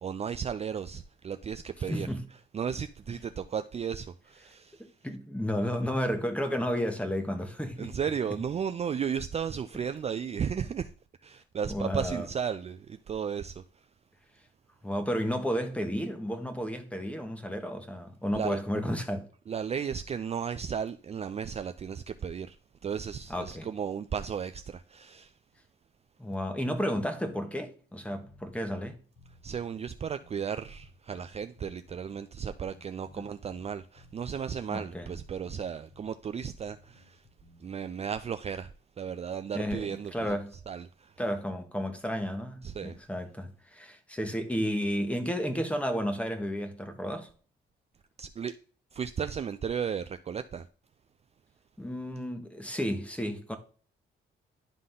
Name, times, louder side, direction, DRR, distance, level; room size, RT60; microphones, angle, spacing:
voice 1, 0.0-2.1 2.5-4.9 7.8-10.9 11.2-13.9 18.3-18.6 19.5-22.6 22.8-25.3 29.4-37.3 37.6-40.4 40.7-41.2 42.6-43.0 48.2-48.5 48.9-50.7, right 7 dB, 30° right, 0.4 m, -34 dB
voice 2, 1.9-2.3 4.8-8.0 11.7-12.3 14.8-19.3 23.3-23.7 26.2-29.0 34.7-35.1 39.5-40.5 41.2-47.3 51.8-53.6, equal, 5° left, 1.3 m, -32 dB
sound 1, 28.2-37.8, left 2 dB, 90° left, 4.1 m, -58 dB
11.0 x 3.8 x 3.8 m
cardioid pair, 90°, 20 cm